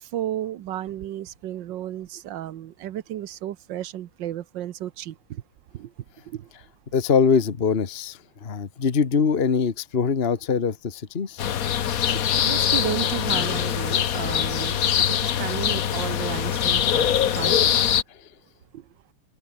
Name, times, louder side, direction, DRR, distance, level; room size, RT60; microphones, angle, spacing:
voice 1, 0.0-5.4 5.7-5.9 6.3-6.5 12.4-14.8 15.2-17.8 18.7-18.8, right 12 dB, 65° right, 1.4 m, -33 dB
voice 2, 6.9-11.4 18.1-18.3, left 6 dB, 30° left, 1.4 m, -23 dB
sound 1, 11.4-18.0, left 9 dB, 50° left, 1.1 m, -23 dB
open air
omnidirectional pair, 2.4 m